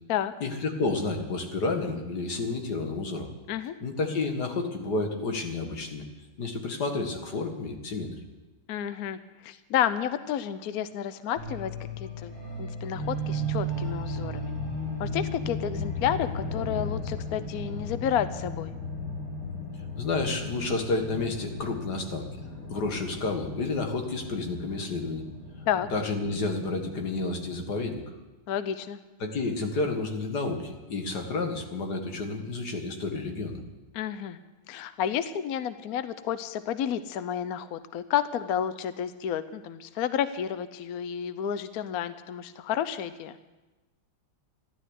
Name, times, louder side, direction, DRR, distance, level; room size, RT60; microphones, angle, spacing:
voice 1, 0.4-3.3 3.8-6.0 6.4-8.1 19.9-22.3 22.7-25.2 25.9-28.0 29.2-33.6, left 3 dB, 50° left, 4 dB, 2.3 m, -30 dB
voice 2, 8.7-11.7 12.0-12.3 12.6-14.5 15.0-18.7 25.7-25.9 28.5-29.0 33.9-34.4 34.7-43.4, left 9 dB, 75° left, 12 dB, 0.8 m, -31 dB
sound 1, 11.4-27.7, left 1 dB, 90° left, 8.6 m, -35 dB
14.0 x 12.0 x 8.2 m, 1.2 s
omnidirectional pair, 2.4 m